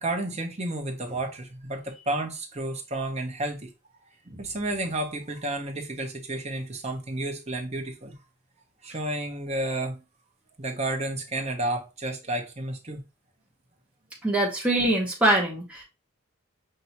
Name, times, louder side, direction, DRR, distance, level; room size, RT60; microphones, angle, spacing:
voice 1, 0.0-3.7 4.3-8.1 8.8-10.0 10.6-13.0, right 1 dB, 30° right, 0.8 m, -31 dB
voice 2, 14.2-15.8, right 1 dB, 5° right, 1.0 m, -23 dB
5.5 x 2.7 x 2.9 m
head